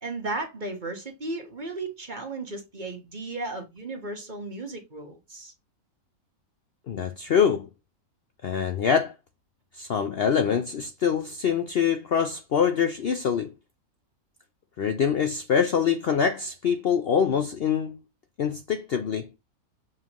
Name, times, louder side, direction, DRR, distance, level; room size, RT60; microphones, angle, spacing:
voice 1, 0.0-5.5, right 2 dB, 35° right, 1.4 m, -35 dB
voice 2, 6.9-7.7 8.4-9.1 9.8-13.5 14.8-18.0 18.4-19.3, left 7 dB, 55° left, 0.7 m, -24 dB
7.3 x 5.3 x 3.0 m
omnidirectional pair, 1.5 m